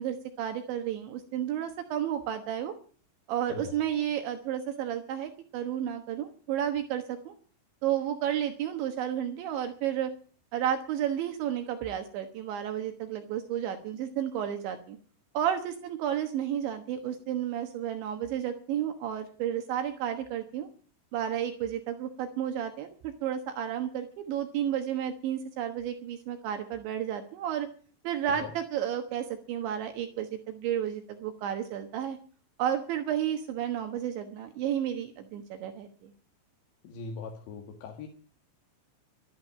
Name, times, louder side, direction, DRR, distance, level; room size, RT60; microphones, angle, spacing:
voice 1, 0.0-2.7 3.3-7.3 7.8-10.1 10.5-15.0 15.3-20.7 21.1-27.7 28.0-32.2 32.6-36.1, right 10 dB, 70° right, 6 dB, 3.4 m, -32 dB
voice 2, 36.8-38.1, left 5 dB, 65° left, 2 dB, 3.8 m, -40 dB
13.0 x 12.0 x 8.6 m, 0.42 s
omnidirectional pair, 5.7 m